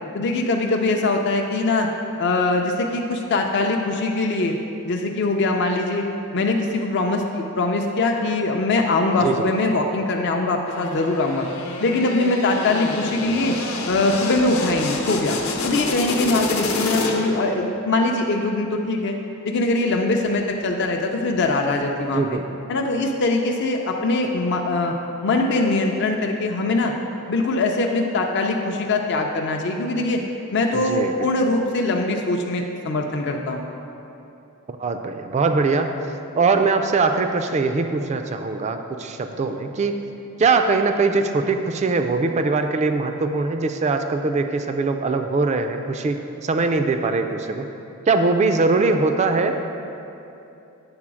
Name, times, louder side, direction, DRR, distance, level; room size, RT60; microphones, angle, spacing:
voice 1, 0.1-1.9 2.2-4.6 4.9-6.1 6.3-11.5 11.8-13.6 13.9-15.4 15.6-19.2 19.5-22.4 22.7-25.0 25.2-26.9 27.3-30.2 30.5-33.7, left 2 dB, 55° left, 2 dB, 0.5 m, -22 dB
sound 1, 10.7-17.5, left 3 dB, 75° left, 0.9 m, -28 dB
voice 2, 22.1-22.6 30.7-31.3 34.7-39.9 40.4-47.7 48.1-49.6, right 3 dB, 30° right, 6 dB, 0.3 m, -22 dB
8.8 x 3.8 x 6.1 m, 2.8 s
head